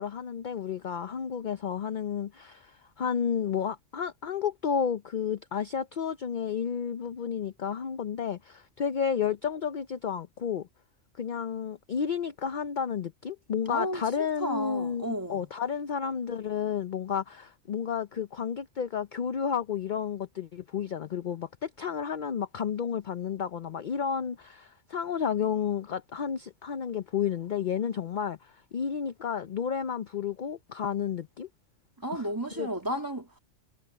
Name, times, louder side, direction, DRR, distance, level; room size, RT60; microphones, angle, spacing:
voice 1, 0.0-10.7 11.2-31.5 32.1-32.2 32.6-32.7, left 7 dB, 50° left, 0.6 m, -31 dB
voice 2, 13.7-15.5 32.0-33.4, equal, 15° right, 2.6 m, -33 dB
omnidirectional pair, 1.3 m